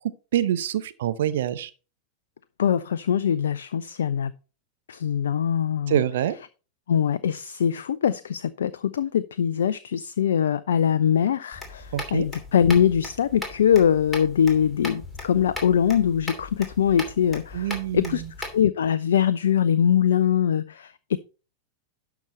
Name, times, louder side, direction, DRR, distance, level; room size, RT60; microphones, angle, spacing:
voice 1, 0.3-1.7 5.9-6.3 11.9-12.3 17.5-18.3, right 11 dB, 60° right, 0.8 m, -25 dB
voice 2, 2.6-4.3 4.9-6.0 6.9-21.2, left 8 dB, 65° left, 0.4 m, -22 dB
sound 1, 11.5-18.6, left 2 dB, 5° left, 2.8 m, -38 dB
11.5 x 5.9 x 4.2 m
figure-of-eight pair, 90°, 0 cm